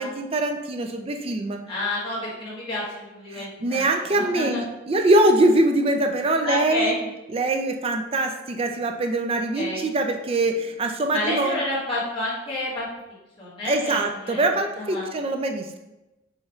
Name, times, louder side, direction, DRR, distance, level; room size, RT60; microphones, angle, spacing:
voice 1, 0.0-1.6 3.3-6.9 7.3-11.6 13.7-15.8, right 2 dB, 30° right, 4 dB, 0.4 m, -23 dB
voice 2, 1.7-4.6 6.4-7.0 9.5-9.9 11.1-12.8 13.4-15.1, left 1 dB, 25° left, -9 dB, 1.5 m, -30 dB
5.5 x 3.2 x 2.4 m, 0.99 s
head